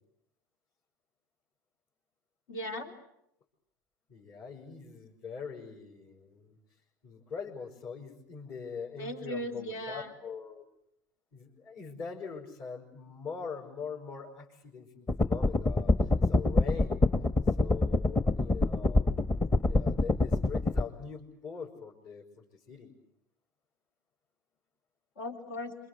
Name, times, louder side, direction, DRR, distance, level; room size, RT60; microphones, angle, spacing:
voice 1, 2.5-2.9 9.0-10.1 25.2-25.8, equal, 70° left, 3 dB, 3.7 m, -37 dB
voice 2, 4.1-6.6 7.0-10.6 11.3-17.1 17.5-19.2 19.7-22.9, left 5 dB, 55° left, -4 dB, 5.5 m, -43 dB
sound 1, 15.1-20.8, left 2 dB, 25° left, 1.3 m, -26 dB
27.5 x 26.0 x 8.1 m, 0.76 s
hypercardioid pair, 80°, 11 cm